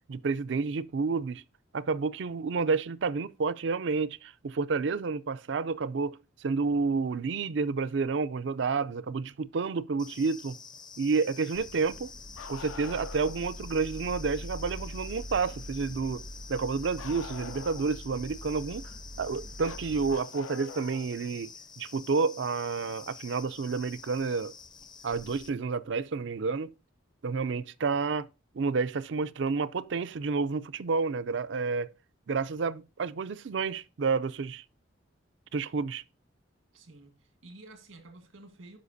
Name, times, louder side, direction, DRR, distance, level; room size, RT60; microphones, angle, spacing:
voice 1, 0.1-1.4 1.7-10.6 11.0-12.1 12.5-16.2 16.5-18.9 19.2-24.5 25.0-26.7 27.2-28.3 28.5-31.9 32.3-34.6 35.5-36.0, right 4 dB, 65° right, 0.4 m, -30 dB
sound 1, 10.0-25.5, left 5 dB, 20° left, 0.5 m, -48 dB
sound 2, 11.5-20.2, equal, 70° left, 2.6 m, -44 dB
Bark, 12.3-13.4 17.0-18.0 19.6-21.1 22.8-22.9 24.8-24.9 26.0-26.1, left 6 dB, 90° left, 0.7 m, -44 dB
voice 2, 36.7-38.8, right 2 dB, 85° right, 1.7 m, -51 dB
11.5 x 5.2 x 2.6 m
head